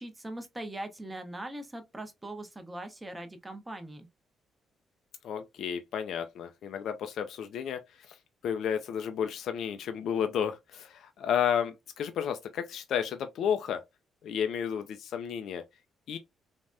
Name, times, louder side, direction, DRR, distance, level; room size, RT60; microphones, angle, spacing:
voice 1, 0.0-4.1, right 1 dB, 15° right, 0.7 m, -41 dB
voice 2, 5.2-7.8 8.1-8.2 8.4-13.8 14.2-15.6 16.1-16.2, left 8 dB, 70° left, 0.3 m, -32 dB
3.3 x 2.1 x 2.5 m
cardioid pair, 90°, 0 cm